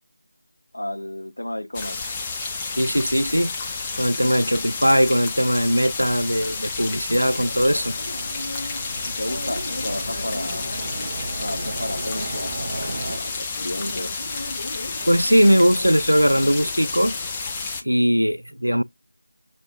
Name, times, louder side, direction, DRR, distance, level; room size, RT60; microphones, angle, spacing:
voice 1, 0.7-2.0 9.0-10.7 11.4-14.1, left 1 dB, 65° left, 0.8 m, -32 dB
sound 1, 1.7-17.8, left 4 dB, 10° left, 0.4 m, -31 dB
voice 2, 2.8-3.5 3.9-7.9 15.1-17.2 17.8-18.8, equal, 90° right, 0.3 m, -19 dB
sound 2, 7.2-13.2, right 2 dB, 35° right, 0.6 m, -36 dB
sound 3, 7.4-17.6, left 1 dB, 45° left, 1.8 m, -39 dB
6.6 x 2.5 x 2.3 m
figure-of-eight pair, 165°, 0 cm